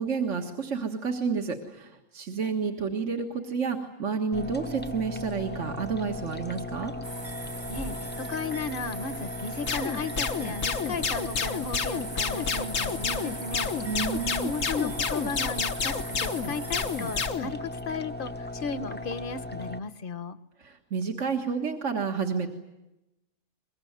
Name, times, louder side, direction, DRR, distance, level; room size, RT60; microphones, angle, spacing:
voice 1, 0.0-6.9 13.8-14.5 20.6-22.5, right 5 dB, 70° right, 2 dB, 2.0 m, -30 dB
sound 1, 4.3-19.8, left 2 dB, 10° left, 0.7 m, -37 dB
Night at the countryside with cows and crickets, 7.0-17.3, right 2 dB, 20° right, 1.0 m, -41 dB
voice 2, 7.7-13.7 14.4-20.4, left 4 dB, 45° left, 12 dB, 1.1 m, -35 dB
sound 2, 9.7-17.5, left 6 dB, 85° left, 1.6 m, -29 dB
23.5 x 22.5 x 9.5 m, 0.95 s
omnidirectional pair, 1.3 m